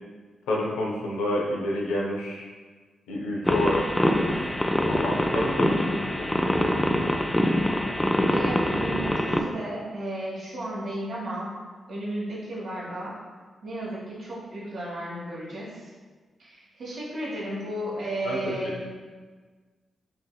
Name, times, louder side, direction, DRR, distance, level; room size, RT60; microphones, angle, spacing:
voice 1, 0.5-2.5 3.1-3.8 4.1-4.4 4.9-6.6 18.2-18.5, left 1 dB, 85° left, -2 dB, 0.6 m, -29 dB
sound 1, 3.4-9.4, left 1 dB, 15° left, 0.4 m, -24 dB
voice 2, 8.3-11.5 11.9-13.1 13.6-15.9 16.4-18.9, right 1 dB, 75° right, -8 dB, 1.2 m, -34 dB
5.5 x 2.7 x 2.3 m, 1.4 s
supercardioid pair, 40°, 0 cm